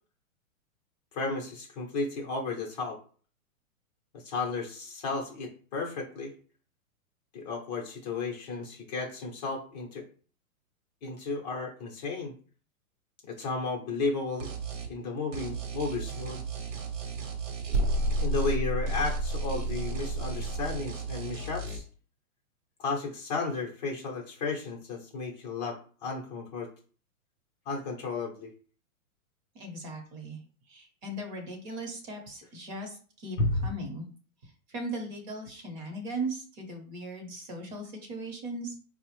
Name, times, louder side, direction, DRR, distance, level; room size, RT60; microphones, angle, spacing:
voice 1, 1.1-3.0 4.1-6.3 7.3-10.1 11.0-12.3 13.3-14.5 14.9-16.4 18.2-21.8 22.8-26.7 27.7-28.5 33.4-33.7, left 3 dB, 30° left, 0 dB, 0.6 m, -33 dB
sound 1, 14.4-14.9 15.3-18.6 18.9-21.8, right 6 dB, 60° right, 0.9 m, -37 dB
sound 2, 17.7-20.8, right 1 dB, 85° right, 0.6 m, -30 dB
voice 2, 29.5-30.4 30.7-33.4 33.6-34.1 34.4-38.7, right 1 dB, 35° right, 2 dB, 0.8 m, -38 dB
4.4 x 2.0 x 3.0 m, 0.41 s
hypercardioid pair, 155°, 43 cm